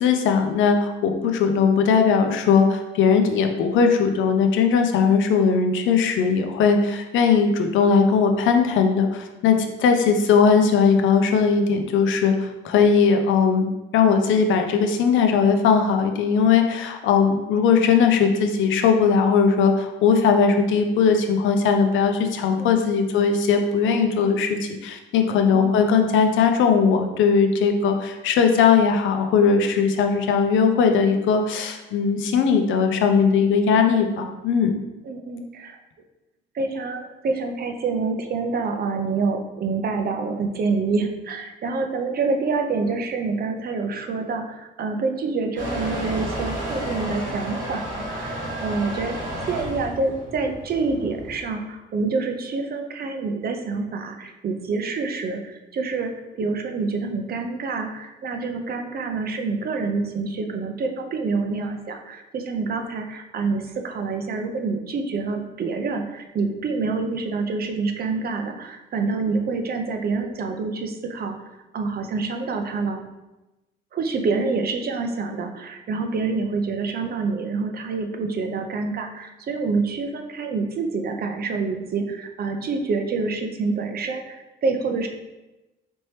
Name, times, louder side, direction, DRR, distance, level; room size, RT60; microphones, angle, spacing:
voice 1, 0.0-13.7 13.9-34.7, left 6 dB, 80° left, 5 dB, 0.5 m, -19 dB
voice 2, 25.3-25.7 35.0-35.8 36.5-49.2 49.5-56.1 56.4-71.4 71.7-73.0 73.9-85.1, right 4 dB, 50° right, 5 dB, 0.6 m, -27 dB
Motor vehicle (road) / Engine starting / Accelerating revving vroom, 45.6-51.4, right 1 dB, 70° right, 1.4 m, -31 dB
4.3 x 2.9 x 3.2 m, 1.0 s
cardioid pair, 90°, 20 cm